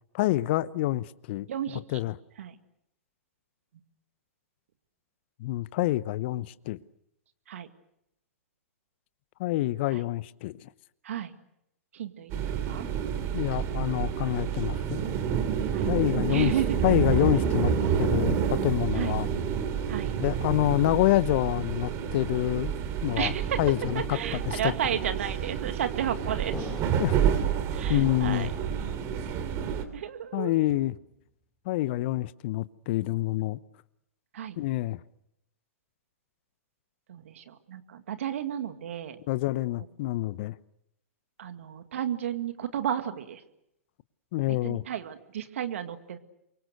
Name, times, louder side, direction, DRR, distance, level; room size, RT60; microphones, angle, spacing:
voice 1, 0.1-1.5 1.9-2.2 5.4-6.8 9.4-10.7 13.3-15.1 15.9-16.5 16.8-17.7 18.0-19.3 20.2-22.7 23.0-23.3 23.6-24.7 27.0-27.2 27.9-28.5 30.3-30.9 31.7-33.6 34.6-35.0 39.3-40.5 44.3-44.8, left 16 dB, 50° left, 0.9 m, -27 dB
voice 2, 1.5-1.8 2.4-2.5 7.5-7.7 9.9-10.0 11.0-11.3 11.9-12.9 15.7-15.9 16.3-16.9 19.0-19.2 19.9-20.1 23.2-23.6 24.0-26.6 27.7-28.5 29.9-30.5 34.3-34.6 37.1-39.2 41.4-43.4 44.6-46.2, right 9 dB, 65° right, 2.1 m, -33 dB
sound 1, 12.3-29.8, right 8 dB, 35° right, 3.0 m, -29 dB
sound 2, 23.8-24.7 25.5-26.0 26.5-27.3 27.8-28.4 28.8-29.5 29.8-30.3 30.7-31.3, left 2 dB, 5° left, 4.1 m, -45 dB
28.5 x 24.5 x 6.7 m
hypercardioid pair, 110°, 8 cm